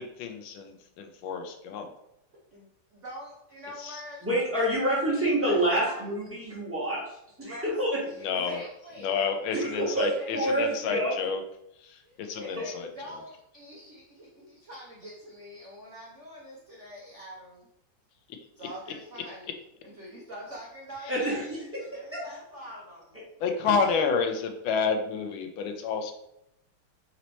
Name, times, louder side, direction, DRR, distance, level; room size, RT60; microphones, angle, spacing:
voice 1, 0.0-1.9 3.8-4.0 8.2-8.6 9.0-11.4 11.8-12.9 23.4-26.1, left 5 dB, 75° left, 5 dB, 1.3 m, -29 dB
voice 2, 2.3-4.2 5.4-6.0 7.4-7.7 8.2-9.2 10.2-10.8 12.0-17.7 18.6-19.6 19.8-23.2, equal, 70° right, -4 dB, 0.6 m, -45 dB
voice 3, 4.2-8.0 9.5-11.1 21.1-21.4 22.1-22.2 23.7-23.8, right 1 dB, 10° right, -7 dB, 1.1 m, -27 dB
4.3 x 3.0 x 4.0 m, 0.79 s
omnidirectional pair, 2.4 m